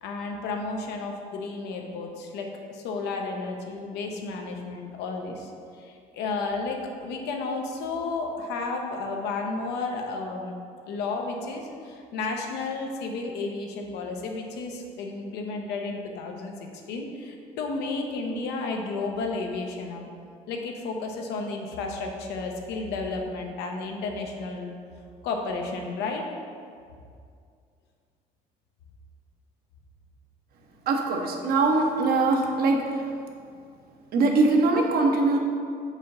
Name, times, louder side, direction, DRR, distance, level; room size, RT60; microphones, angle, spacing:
voice 1, 0.0-5.5 5.8-10.5 10.9-20.1 20.5-24.7 25.2-26.2, left 3 dB, 85° left, 2 dB, 0.8 m, -32 dB
voice 2, 30.9-32.8 34.1-35.4, right 3 dB, 65° right, 2 dB, 0.9 m, -22 dB
5.0 x 3.8 x 5.4 m, 2.3 s
cardioid pair, 110°, 17 cm